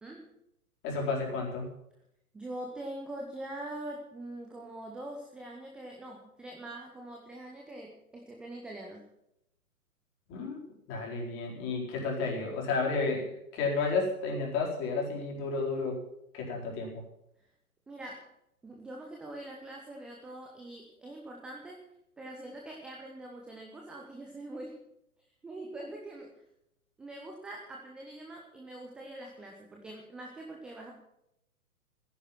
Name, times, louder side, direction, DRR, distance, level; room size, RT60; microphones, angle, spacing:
voice 1, 0.8-1.7 10.3-10.6 10.9-16.0 16.3-17.0, left 4 dB, 25° left, -1 dB, 4.5 m, -32 dB
voice 2, 2.3-9.1 17.9-18.3 18.6-21.8 22.2-24.8 25.4-26.3 27.0-30.9, right 1 dB, ahead, 0 dB, 0.5 m, -43 dB
14.0 x 10.5 x 7.5 m, 0.80 s
figure-of-eight pair, 120°, 44 cm